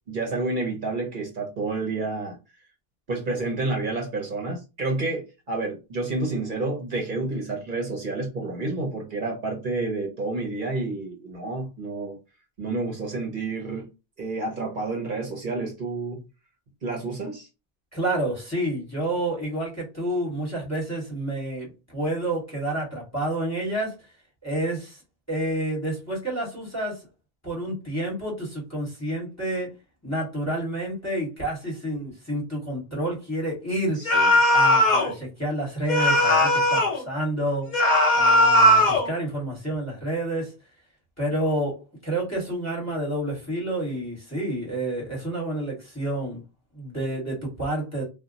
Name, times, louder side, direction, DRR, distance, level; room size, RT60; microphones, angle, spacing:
voice 1, 0.1-2.4 3.1-12.2 12.6-13.9 14.2-16.2 16.8-17.5 34.0-34.3, right 3 dB, 55° right, 0.8 m, -29 dB
voice 2, 17.9-23.9 24.4-25.0 25.3-27.1 27.4-29.7 30.0-34.0 34.5-37.7 38.1-40.5 41.2-46.4 46.7-48.0, right 1 dB, 15° left, 1.2 m, -29 dB
sound 1, 34.1-35.1 35.9-37.0 37.7-39.1, left 1 dB, 50° left, 0.9 m, -18 dB
2.2 x 2.1 x 3.8 m
omnidirectional pair, 1.0 m